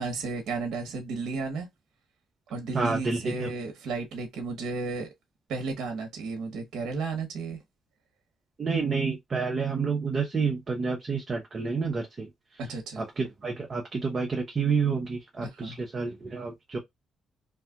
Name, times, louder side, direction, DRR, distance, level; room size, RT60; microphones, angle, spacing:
voice 1, 0.0-1.7 2.5-5.1 5.5-7.6 12.6-13.0 15.4-15.8, right 4 dB, 80° right, 0.9 m, -33 dB
voice 2, 2.7-3.5 8.6-12.6 13.0-16.8, right 5 dB, 40° right, 0.7 m, -29 dB
2.7 x 2.4 x 3.6 m
cardioid pair, 90°, 0 cm